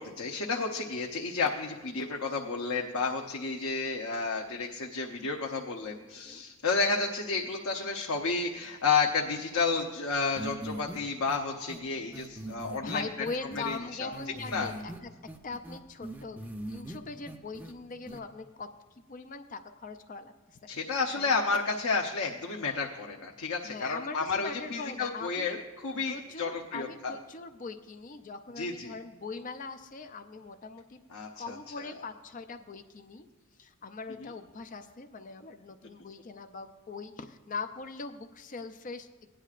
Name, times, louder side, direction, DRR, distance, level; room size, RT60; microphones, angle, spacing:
voice 1, 0.0-13.0 13.5-14.1 14.5-14.7 20.7-27.1 28.6-29.0 31.1-31.9 34.2-34.3, left 4 dB, 85° left, 1 dB, 0.8 m, -31 dB
voice 2, 5.9-6.4 12.7-16.4 16.7-20.7 21.1-21.3 23.6-25.6 26.1-31.0 31.4-33.3 33.6-39.1, left 4 dB, 40° left, 8 dB, 0.5 m, -41 dB
sound 1, 10.4-11.0 11.3-11.4 11.7-11.8 12.1-13.8 14.1-15.0 15.3-17.0 17.3-17.7 18.1-18.2, right 1 dB, 10° right, 0.6 m, -41 dB
17.5 x 10.0 x 2.5 m, 1.2 s
head